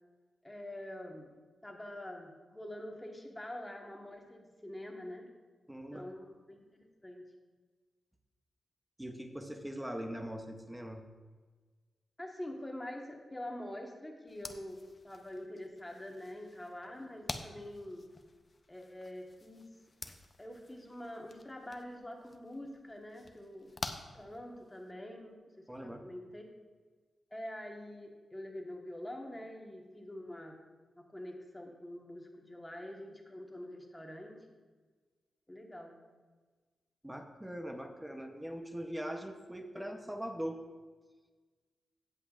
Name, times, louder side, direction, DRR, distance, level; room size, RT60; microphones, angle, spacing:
voice 1, 0.4-1.3 1.6-5.3 5.9-7.3 12.2-18.1 18.7-19.7 20.4-23.7 24.1-26.5 27.3-30.5 31.0-34.4 35.5-36.0, left 1 dB, 10° left, 1 dB, 1.3 m, -45 dB
voice 2, 5.7-6.1 9.0-11.0 25.7-26.0 37.0-40.6, equal, 5° right, 4 dB, 0.7 m, -41 dB
sound 1, 14.3-24.9, left 3 dB, 30° left, 0.6 m, -48 dB
16.5 x 7.7 x 2.4 m, 1.4 s
wide cardioid pair, 155°, 0 cm